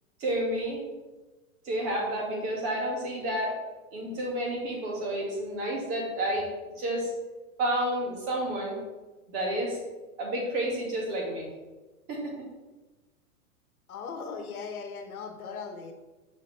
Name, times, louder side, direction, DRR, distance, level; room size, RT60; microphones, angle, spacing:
voice 1, 0.2-0.8 1.6-3.5 3.9-6.5 6.8-7.1 7.6-8.8 9.3-9.8 10.2-11.5 12.1-12.3, right 1 dB, 35° right, -2 dB, 2.2 m, -30 dB
voice 2, 13.9-15.9, left 5 dB, 90° left, 5 dB, 1.2 m, -38 dB
6.1 x 5.5 x 3.4 m, 1.2 s
hypercardioid pair, 140°, 42 cm